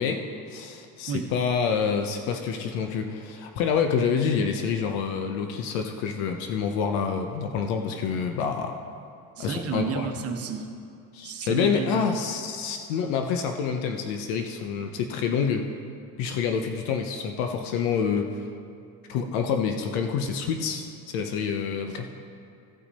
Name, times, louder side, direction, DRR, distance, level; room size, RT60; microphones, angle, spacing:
voice 1, 0.0-8.7 9.4-10.1 11.1-15.7 16.2-18.4 19.1-22.1, left 6 dB, 80° left, 5 dB, 0.8 m, -27 dB
voice 2, 9.4-10.7 11.2-12.0 21.9-22.2, right 6 dB, 40° right, 5 dB, 1.1 m, -32 dB
15.5 x 5.9 x 4.1 m, 2.5 s
cardioid pair, 120°, 38 cm